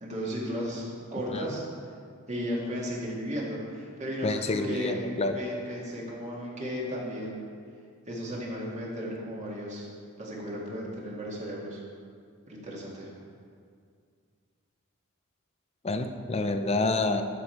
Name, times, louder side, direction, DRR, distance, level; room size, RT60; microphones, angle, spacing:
voice 1, 0.0-1.7 2.3-5.1 5.3-7.4 8.1-9.9 10.2-11.8 12.5-13.1, equal, 30° right, -4 dB, 2.0 m, -35 dB
voice 2, 4.2-5.4 15.8-17.2, left 2 dB, 30° left, 7 dB, 0.5 m, -28 dB
11.5 x 6.8 x 4.4 m, 2.2 s
head